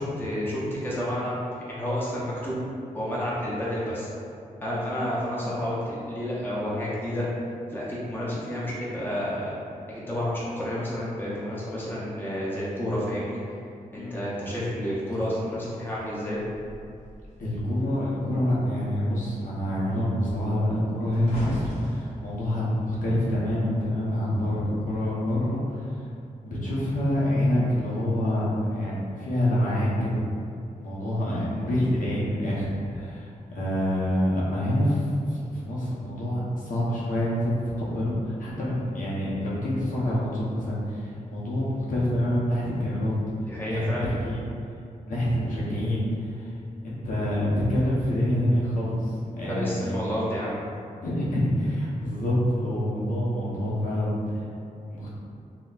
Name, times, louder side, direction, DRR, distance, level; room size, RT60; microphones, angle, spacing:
voice 1, 0.0-1.4 1.7-2.6 2.9-4.1 4.6-7.3 7.7-9.5 9.9-13.6 13.9-16.4 43.5-44.1 49.5-50.6, equal, 15° left, -8 dB, 0.6 m, -30 dB
sound 1, 15.0-17.8 18.1-18.4 18.8-24.1 24.8-25.1, equal, 50° left, 1.1 m, -40 dB
voice 2, 17.4-25.9 26.4-30.2 30.7-35.0 35.3-37.5 37.8-43.1 43.6-44.4 45.1-46.5 46.8-50.0 51.0-54.4 54.9-55.1, equal, 65° left, -7 dB, 0.7 m, -26 dB
3.9 x 2.1 x 2.3 m, 2.4 s
wide cardioid pair, 125°, 14 cm